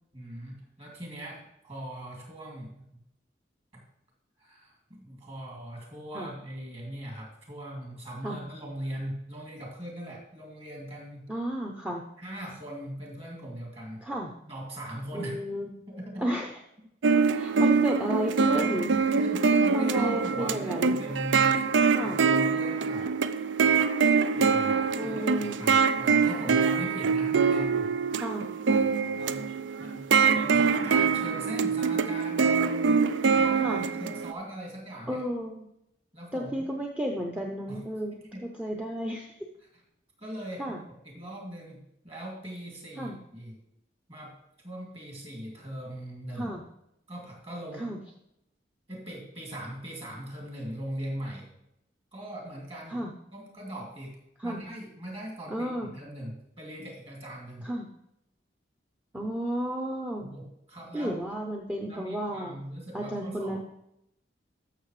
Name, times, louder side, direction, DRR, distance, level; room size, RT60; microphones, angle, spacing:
voice 1, 0.1-3.0 3.7-3.8 4.4-11.3 12.2-14.0 14.5-15.4 15.9-16.4 18.5-18.7 19.2-21.6 22.0-23.1 24.3-28.0 29.1-29.5 29.8-30.1 30.3-33.1 33.4-35.2 36.1-36.7 37.7-37.8 38.1-38.4 40.2-40.6 41.0-43.6 44.1-44.3 44.6-46.5 47.1-47.9 48.9-51.5 52.1-53.0 53.3-57.7 60.2-61.2 61.9-63.6, right 1 dB, 30° right, -1 dB, 2.6 m, -40 dB
voice 2, 11.3-12.0 14.0-14.3 15.1-15.7 16.2-16.5 17.4-19.0 19.7-21.0 21.8-22.2 25.0-25.6 28.2-28.5 33.6-33.9 35.1-35.7 36.3-38.1 38.4-39.5 40.6-40.8 43.0-43.2 46.3-46.6 47.8-48.0 52.9-53.1 54.4-54.6 55.5-55.9 57.6-57.9 59.1-60.3 60.9-62.6 62.9-63.6, right 1 dB, 5° right, 0 dB, 0.6 m, -32 dB
sound 1, 17.0-34.3, right 5 dB, 80° right, 0.4 m, -24 dB
12.5 x 6.5 x 3.2 m, 0.80 s
head